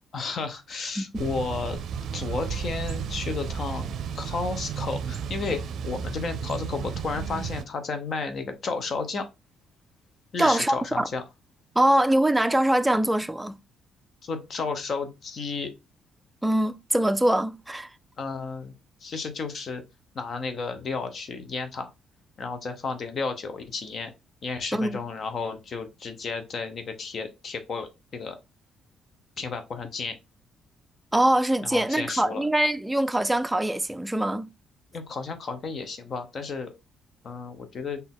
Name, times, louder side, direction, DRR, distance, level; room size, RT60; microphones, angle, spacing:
voice 1, 0.1-1.8 2.1-9.3 10.3-11.2 14.2-15.7 18.2-18.7 19.0-19.8 20.1-21.9 22.4-24.1 24.4-28.4 29.4-30.2 31.6-32.4 34.9-36.7 37.2-38.0, left 4 dB, 50° left, 0.8 m, -32 dB
Thunder / Bicycle, 1.1-7.6, right 7 dB, 70° right, 0.4 m, -33 dB
voice 2, 10.4-11.1 11.8-13.6 16.4-17.9 24.7-25.0 31.1-34.5, right 1 dB, 10° right, 0.4 m, -23 dB
4.1 x 2.7 x 3.7 m
cardioid pair, 90°, 0 cm